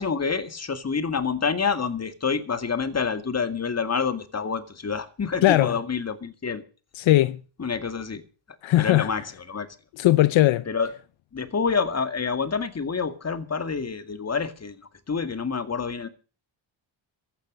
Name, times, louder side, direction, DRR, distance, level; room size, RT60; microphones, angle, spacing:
voice 1, 0.0-6.6 7.6-8.2 8.8-9.7 10.7-10.9 11.3-14.8 15.1-16.1, left 5 dB, 30° left, 2.2 m, -27 dB
voice 2, 5.4-5.8 6.9-7.4 8.6-9.1 10.0-10.7, left 15 dB, 75° left, 0.8 m, -19 dB
15.0 x 11.5 x 6.5 m
cardioid pair, 90°, 47 cm